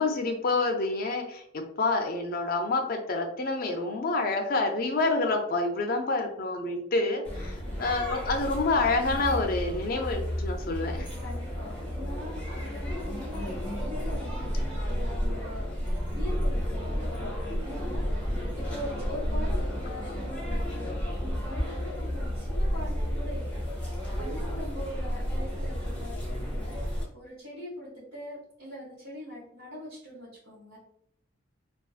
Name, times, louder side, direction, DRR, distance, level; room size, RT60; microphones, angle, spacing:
voice 1, 0.0-11.1, left 3 dB, 45° left, 4 dB, 0.4 m, -28 dB
sound 1, 7.2-27.0, equal, 10° left, 0.7 m, -32 dB
voice 2, 11.2-20.9 21.2-23.9 24.2-30.8, equal, 80° right, -10 dB, 1.1 m, -42 dB
2.5 x 2.3 x 2.4 m, 0.70 s
head